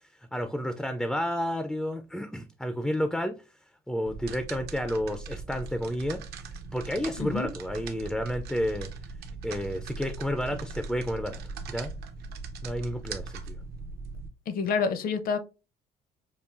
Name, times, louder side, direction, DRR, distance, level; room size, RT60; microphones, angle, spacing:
voice 1, 0.0-3.4 3.9-6.2 6.7-8.9 9.4-11.4 11.7-11.9 12.6-13.6, equal, ahead, 0.3 m, -31 dB
sound 1, 4.1-14.3, right 4 dB, 70° right, 0.6 m, -40 dB
voice 2, 7.2-7.5 14.5-15.4, left 5 dB, 60° left, 0.6 m, -28 dB
5.3 x 2.3 x 2.4 m
cardioid pair, 110°, 17 cm